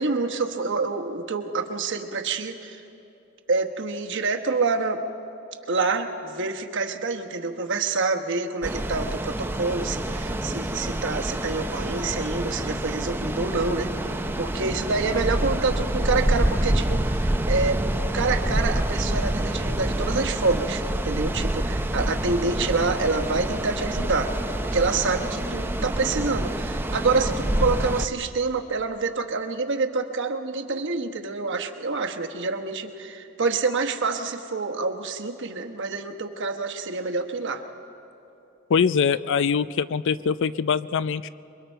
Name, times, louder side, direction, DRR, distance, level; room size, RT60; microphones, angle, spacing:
voice 1, 0.0-2.8 3.5-5.0 5.7-17.8 18.1-24.3 24.7-37.6, right 3 dB, 60° right, 5 dB, 1.1 m, -27 dB
sound 1, 8.6-28.1, right 1 dB, 10° right, 0.6 m, -27 dB
voice 2, 38.7-41.3, left 6 dB, 60° left, 16 dB, 0.4 m, -23 dB
28.0 x 22.0 x 4.5 m, 2.8 s
head